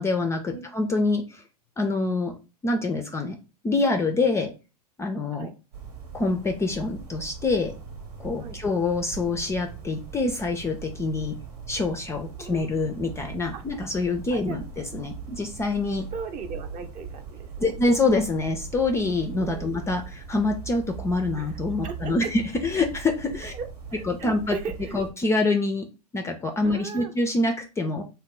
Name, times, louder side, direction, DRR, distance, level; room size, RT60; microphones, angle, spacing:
voice 1, 0.0-1.4 1.8-2.4 2.6-3.4 3.6-4.5 5.0-5.5 6.1-7.7 8.2-11.4 11.7-16.1 17.6-23.5 24.1-24.6 24.9-25.9 26.1-28.0, left 3 dB, 15° left, 5 dB, 0.3 m, -26 dB
sound 1, 5.7-25.1, right 6 dB, 80° right, 1.0 m, -40 dB
voice 2, 12.4-12.7 13.5-13.6 14.3-14.6 16.1-17.7 19.3-19.8 21.3-21.6 21.8-22.3 23.4-25.0 26.6-27.1, right 6 dB, 35° right, 7 dB, 0.6 m, -38 dB
2.8 x 2.0 x 3.7 m, 0.30 s
hypercardioid pair, 105°, 20 cm